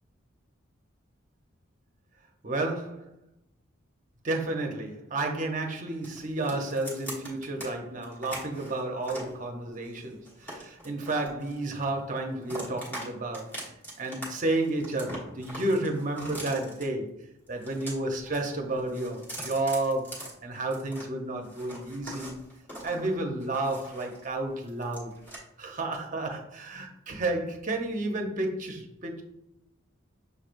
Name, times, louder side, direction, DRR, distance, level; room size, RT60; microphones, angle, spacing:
voice 1, 2.4-2.9 4.2-13.5 14.0-17.1 17.5-22.4 22.8-25.2 25.6-29.2, right 2 dB, 40° right, 0.7 m, -31 dB
sound 1, 6.0-7.7 8.0-9.3 9.8-11.9 12.2-13.1 13.3-14.2 14.5-16.8 17.5-18.4 18.7-21.1 21.4-24.3 24.6-25.4, right 1 dB, 10° left, 1.3 m, -42 dB
6.5 x 3.2 x 2.5 m
head